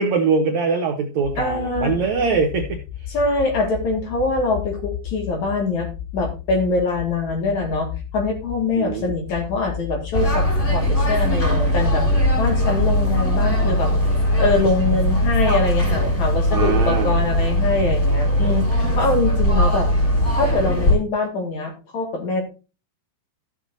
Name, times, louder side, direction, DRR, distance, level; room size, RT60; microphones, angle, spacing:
voice 1, 0.0-3.1 8.8-9.1 16.5-17.1, right 5 dB, 85° right, 4 dB, 1.5 m, -22 dB
sound 1, 1.2-13.2, left 9 dB, 85° left, 2.8 m, -34 dB
voice 2, 1.4-1.9 3.1-5.9 6.1-12.0 12.4-13.9 14.4-19.9 20.3-22.4, left 3 dB, 50° left, 2 dB, 3.0 m, -23 dB
sound 2, 10.1-21.0, equal, 20° left, 4.9 m, -19 dB
14.5 x 7.7 x 2.7 m, 0.31 s
omnidirectional pair, 4.7 m